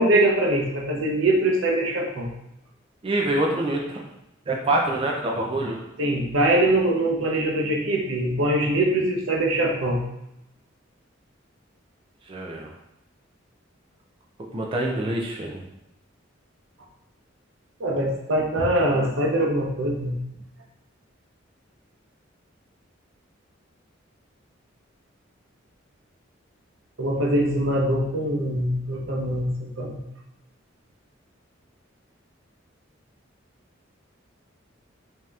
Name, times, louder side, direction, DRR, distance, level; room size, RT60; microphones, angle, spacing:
voice 1, 0.0-2.3 6.0-10.0 17.8-20.2 27.0-30.0, right 1 dB, 80° right, 0 dB, 0.7 m, -23 dB
voice 2, 3.0-4.0 4.5-5.8 12.3-12.7 14.5-15.6, right 1 dB, 30° right, -1 dB, 0.4 m, -25 dB
5.2 x 2.8 x 2.4 m, 0.84 s
head